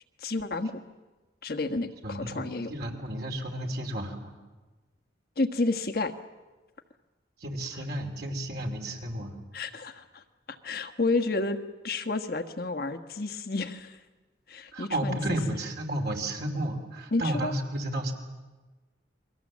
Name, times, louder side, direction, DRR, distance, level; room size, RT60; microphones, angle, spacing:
voice 1, 0.2-0.8 1.4-2.7 5.4-6.1 9.5-10.2 10.5-11.6 11.8-14.0 14.5-15.4 17.1-17.6, left 3 dB, 50° left, 7 dB, 1.3 m, -30 dB
voice 2, 2.0-4.4 7.4-9.4 14.7-18.1, right 1 dB, 55° right, 1 dB, 2.9 m, -32 dB
29.5 x 23.0 x 7.4 m, 1.2 s
head